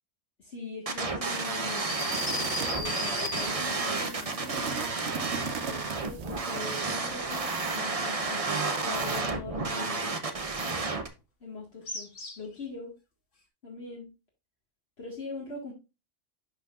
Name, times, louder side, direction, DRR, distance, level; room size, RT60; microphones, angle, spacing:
voice 1, 0.4-2.0 2.3-4.7 5.7-10.2 11.4-12.1 12.4-12.9 13.6-14.1 15.0-15.7, left 3 dB, 55° left, -3 dB, 2.0 m, -41 dB
sound 1, 0.9-11.1, right 3 dB, 30° right, 0.9 m, -31 dB
sound 2, 1.6-3.9 11.9-12.6, left 2 dB, 80° left, 2.5 m, -36 dB
sound 3, 1.9-7.0, right 6 dB, 65° right, 1.0 m, -39 dB
11.5 x 4.2 x 2.4 m, 0.27 s
omnidirectional pair, 1.3 m